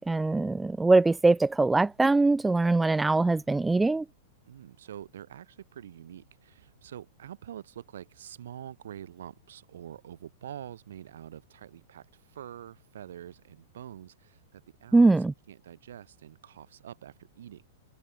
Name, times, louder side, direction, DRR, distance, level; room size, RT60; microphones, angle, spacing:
voice 1, 0.1-4.0 14.9-15.3, right 3 dB, 10° right, 0.4 m, -22 dB
voice 2, 4.4-17.6, right 10 dB, 65° right, 2.7 m, -46 dB
figure-of-eight pair, 100°, 0 cm